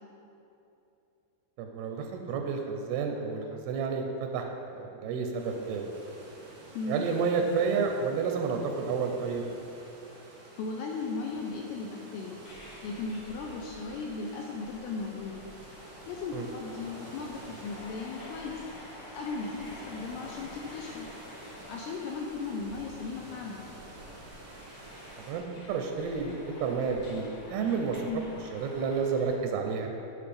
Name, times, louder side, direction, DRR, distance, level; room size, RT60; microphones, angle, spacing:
voice 1, 1.6-4.4 4.7-5.8 6.9-9.4 16.3-16.4 25.2-28.0 28.5-29.9, right 5 dB, 80° right, 3 dB, 2.3 m, -30 dB
sound 1, 5.4-25.3, right 1 dB, 60° right, 1.5 m, -50 dB
voice 2, 10.6-12.4 12.8-15.4 16.1-18.6 19.1-21.1 21.7-23.6 28.1-28.2, left 4 dB, 80° left, -1 dB, 2.4 m, -36 dB
sound 2, 12.4-29.4, left 1 dB, 60° left, 2.6 m, -50 dB
10.5 x 7.2 x 3.4 m, 2.8 s
omnidirectional pair, 5.1 m